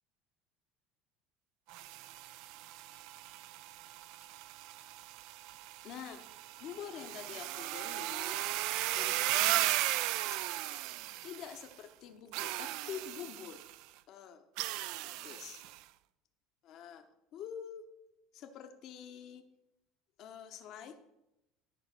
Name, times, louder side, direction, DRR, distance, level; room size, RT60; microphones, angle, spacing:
sound 1, 1.7-11.7 12.3-13.7 14.6-15.8, right 16 dB, 70° right, 0.3 m, -36 dB
voice 1, 5.8-6.2 6.6-8.4 8.9-9.8 11.2-13.6 14.1-14.4 15.0-15.6 16.6-17.0 17.3-17.8 18.3-19.4 20.2-21.0, left 8 dB, 60° left, 6 dB, 0.8 m, -46 dB
11.0 x 3.9 x 5.9 m, 0.89 s
supercardioid pair, 100°, 0 cm